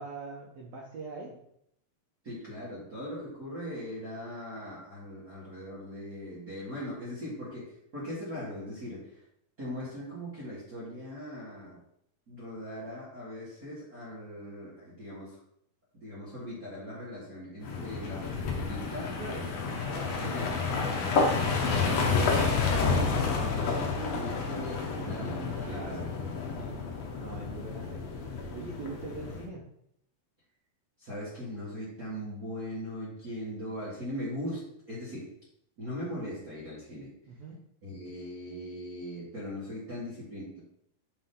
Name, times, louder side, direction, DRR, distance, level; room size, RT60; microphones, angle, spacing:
voice 1, 0.0-1.3 19.2-19.5 19.9-20.6 25.6-26.1 26.5-26.7 27.2-28.1 28.5-29.6 37.3-37.6, right 3 dB, 80° right, -2 dB, 1.5 m, -42 dB
voice 2, 2.2-9.1 9.6-11.8 12.3-15.3 15.9-19.2 20.2-21.0 21.8-26.1 31.0-35.3 35.8-37.1 37.8-40.6, equal, 50° right, -9 dB, 1.0 m, -40 dB
sound 1, 17.6-29.4, left 4 dB, 80° left, 1.4 m, -30 dB
7.3 x 4.0 x 3.7 m, 0.76 s
omnidirectional pair, 4.4 m